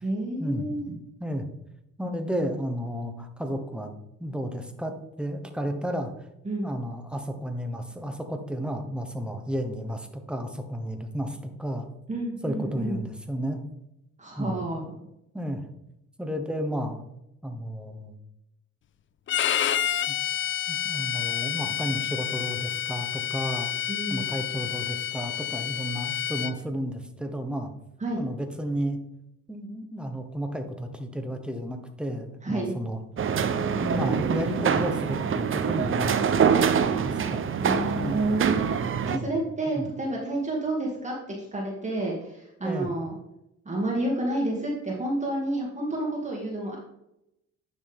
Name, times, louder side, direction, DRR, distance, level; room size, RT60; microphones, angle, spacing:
voice 1, 0.0-0.8 6.4-6.7 12.1-13.0 14.2-14.9 23.9-24.3 28.0-28.2 32.4-32.7 37.6-38.7 39.1-43.2 43.7-46.8, right 2 dB, 25° right, -4 dB, 2.3 m, -29 dB
voice 2, 2.0-3.9 4.2-6.1 6.6-11.9 12.4-13.6 14.4-14.6 15.3-15.6 16.2-17.0 17.4-18.2 20.1-20.2 20.7-23.7 24.1-27.7 28.2-29.0 29.5-33.0 33.8-36.4 36.8-37.4 37.9-38.3 39.1-39.4 39.7-39.9 42.6-42.9, equal, 5° right, 5 dB, 1.2 m, -32 dB
Bowed string instrument, 19.3-26.5, left 10 dB, 40° left, 0.4 m, -29 dB
sound 1, 33.2-39.2, right 7 dB, 45° right, 0.7 m, -25 dB
9.6 x 6.2 x 3.6 m, 0.84 s
cardioid pair, 90°, 30 cm